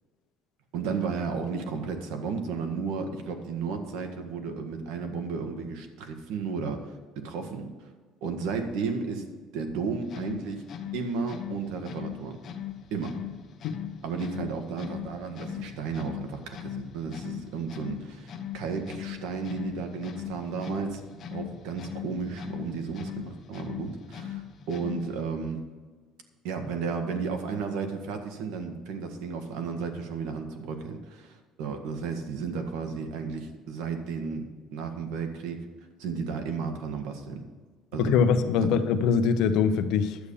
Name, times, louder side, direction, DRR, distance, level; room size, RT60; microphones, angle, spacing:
voice 1, 0.7-7.7 8.2-9.3 9.5-10.6 10.9-12.4 12.9-13.2 14.0-21.0 21.3-25.6 26.4-35.7 36.0-37.4 37.9-38.2 38.6-38.7, right 5 dB, 85° right, 6 dB, 1.7 m, -33 dB
sound 1, 10.0-25.3, left 10 dB, 35° left, 1.1 m, -40 dB
voice 2, 38.0-40.2, left 6 dB, 65° left, 9 dB, 0.9 m, -23 dB
11.5 x 8.4 x 5.5 m, 1.4 s
cardioid pair, 175°, 0 cm